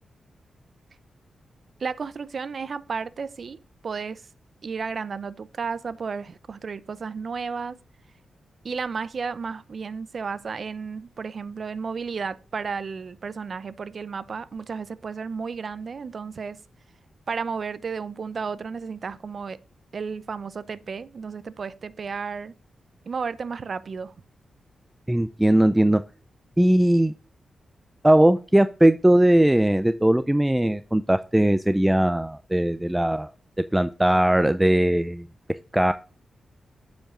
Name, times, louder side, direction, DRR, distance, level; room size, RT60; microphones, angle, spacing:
voice 1, 1.8-4.2 4.6-7.8 8.6-16.6 17.3-19.6 19.9-22.5 23.1-24.1, right 5 dB, 55° right, 0.6 m, -33 dB
voice 2, 25.1-26.0 26.6-27.1 28.0-33.3 33.7-35.3 35.7-35.9, right 1 dB, 10° right, 0.4 m, -19 dB
8.8 x 5.3 x 3.6 m
cardioid pair, 70°, 0 cm